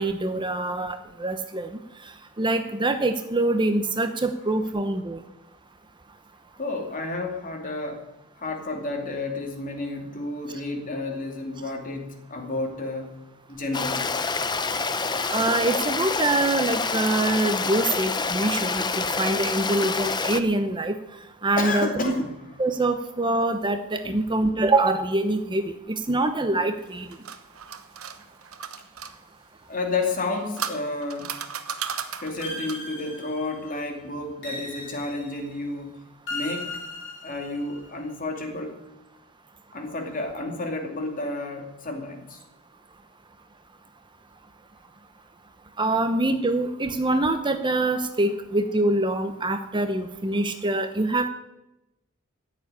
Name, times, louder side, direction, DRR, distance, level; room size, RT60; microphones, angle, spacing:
voice 1, 0.0-1.7 2.4-5.2 15.3-20.9 21.4-22.1 22.6-25.7 26.1-27.1 45.8-51.3, right 2 dB, 20° right, 7 dB, 0.8 m, -24 dB
voice 2, 6.6-8.0 8.4-13.1 13.5-14.1 21.6-22.3 24.0-24.2 29.7-31.3 31.8-31.9 32.2-36.0 36.3-36.7 37.2-38.8 39.7-42.4, left 2 dB, 40° left, 3 dB, 2.6 m, -31 dB
Stream, 13.7-20.4, left 4 dB, 20° left, 0.7 m, -27 dB
sound 1, 26.8-29.1 30.1-32.9, right 7 dB, 70° right, 1.1 m, -35 dB
sound 2, 32.4-33.8 34.4-35.6 36.3-37.8, left 2 dB, 55° left, 4.7 m, -37 dB
14.0 x 7.5 x 10.0 m, 0.95 s
head